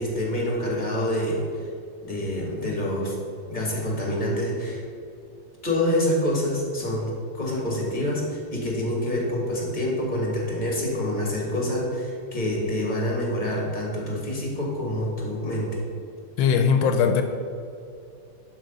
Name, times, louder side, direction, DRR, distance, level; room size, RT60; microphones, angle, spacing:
voice 1, 0.0-1.7 2.0-3.2 3.5-4.8 5.6-15.8, left 1 dB, 25° left, -2 dB, 1.9 m, -27 dB
voice 2, 16.4-17.2, left 6 dB, 85° left, 6 dB, 1.3 m, -19 dB
11.5 x 4.0 x 5.4 m, 2.4 s
omnidirectional pair, 2.0 m